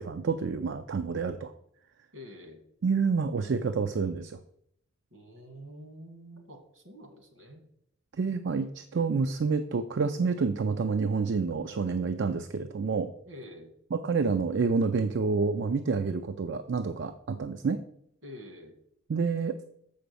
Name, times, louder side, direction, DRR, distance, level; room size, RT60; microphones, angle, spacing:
voice 1, 0.0-1.5 2.8-4.4 8.1-13.1 13.9-17.8 19.1-19.6, right 4 dB, 55° right, 8 dB, 0.4 m, -28 dB
voice 2, 2.1-2.6 5.1-7.6 13.3-13.7 18.2-18.8, equal, 75° right, 5 dB, 1.9 m, -47 dB
6.9 x 5.1 x 6.8 m, 0.72 s
head